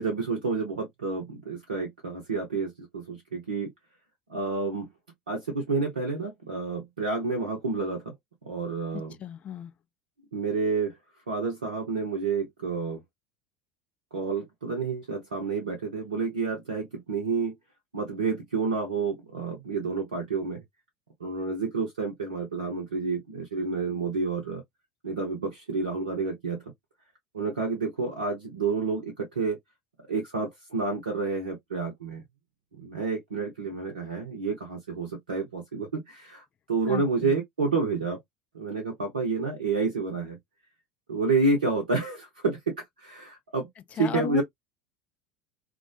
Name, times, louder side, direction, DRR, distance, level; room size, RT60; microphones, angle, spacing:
voice 1, 0.0-3.7 4.3-4.9 5.3-8.1 8.4-9.1 10.3-11.0 11.3-13.0 14.1-17.6 17.9-20.6 21.2-24.6 25.0-26.6 27.3-29.6 30.0-32.2 32.8-38.2 38.5-40.4 41.1-43.7 44.0-44.4, right 4 dB, 80° right, 0.7 m, -29 dB
voice 2, 8.9-9.7 36.9-37.3 44.0-44.4, left 8 dB, 35° left, 0.4 m, -35 dB
2.3 x 2.2 x 2.6 m
figure-of-eight pair, 70°, 4 cm